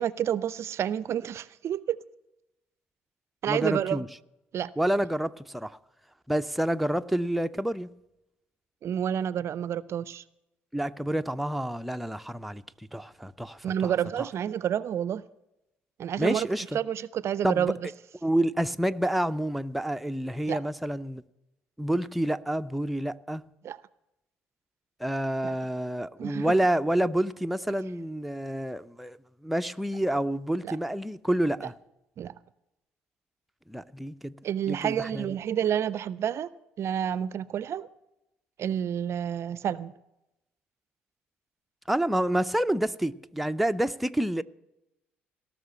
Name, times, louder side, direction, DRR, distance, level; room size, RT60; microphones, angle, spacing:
voice 1, 0.0-2.0 3.4-4.1 4.5-4.7 8.8-10.2 13.6-15.2 16.0-16.5 16.7-17.8 20.5-20.6 23.6-23.8 25.4-25.5 26.2-26.5 30.6-30.8 32.2-32.3 34.4-36.5 36.8-37.9 38.6-39.9, right 9 dB, 50° right, 0.5 m, -29 dB
voice 2, 3.5-4.1 4.8-5.8 6.3-7.9 10.7-13.9 16.2-16.8 17.4-17.7 18.2-21.2 21.8-23.4 25.0-29.2 29.4-31.7 33.7-34.3 34.7-35.3 41.9-44.4, right 1 dB, ahead, 0.6 m, -28 dB
17.5 x 6.2 x 8.7 m
hypercardioid pair, 50°, 6 cm